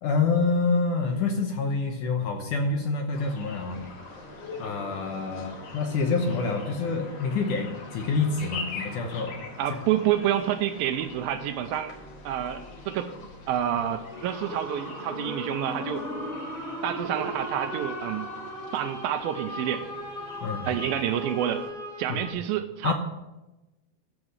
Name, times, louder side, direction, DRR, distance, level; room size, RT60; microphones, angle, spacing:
voice 1, 0.0-3.8 4.6-9.4 20.4-20.7 22.1-22.2 22.8-22.9, left 4 dB, 70° left, 3 dB, 2.1 m, -27 dB
sound 1, 3.1-21.7, left 2 dB, 50° left, 2.1 m, -42 dB
voice 2, 9.6-11.9 12.3-13.1 13.5-16.1 16.8-18.3 18.7-19.9 20.7-21.7 22.0-22.9, right 11 dB, 80° right, 9 dB, 2.2 m, -28 dB
sound 2, 14.1-22.3, equal, 25° left, 2.1 m, -37 dB
13.5 x 6.1 x 6.4 m, 1.0 s
omnidirectional pair, 4.5 m